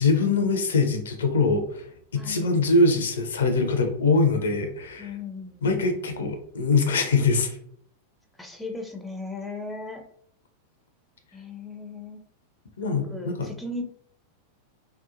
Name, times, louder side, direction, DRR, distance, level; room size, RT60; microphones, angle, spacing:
voice 1, 0.0-5.1 5.6-7.5 12.8-13.5, left 3 dB, 65° left, 6 dB, 0.4 m, -23 dB
voice 2, 2.2-2.5 5.0-5.7 8.4-10.0 11.3-12.2 12.8-13.8, left 3 dB, 5° left, 3 dB, 0.4 m, -37 dB
2.8 x 2.1 x 2.4 m, 0.65 s
figure-of-eight pair, 90°, 0 cm